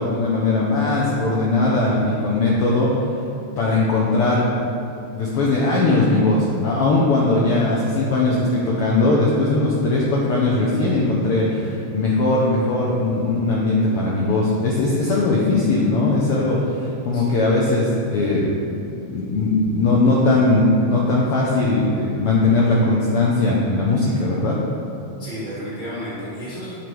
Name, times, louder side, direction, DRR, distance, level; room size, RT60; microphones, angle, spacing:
voice 1, 0.0-2.9 3.6-4.5 5.1-24.5, left 2 dB, 80° left, -4 dB, 1.3 m, -19 dB
voice 2, 25.2-26.7, equal, 55° right, -10 dB, 0.5 m, -32 dB
9.0 x 3.2 x 4.5 m, 2.7 s
omnidirectional pair, 3.4 m